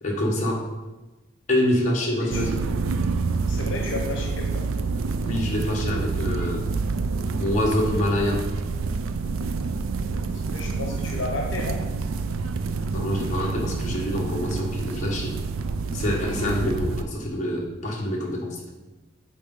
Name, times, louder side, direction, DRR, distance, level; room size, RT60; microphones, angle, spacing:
voice 1, 0.0-0.6 1.5-2.6 5.2-6.6 7.3-8.4 12.9-15.3 15.9-18.7, left 1 dB, 35° left, -3 dB, 1.4 m, -26 dB
sound 1, 2.3-17.0, right 4 dB, 85° right, 0.4 m, -28 dB
voice 2, 3.5-4.7 10.3-11.8, left 2 dB, 65° left, 0 dB, 1.1 m, -32 dB
9.2 x 4.1 x 3.9 m, 1.1 s
head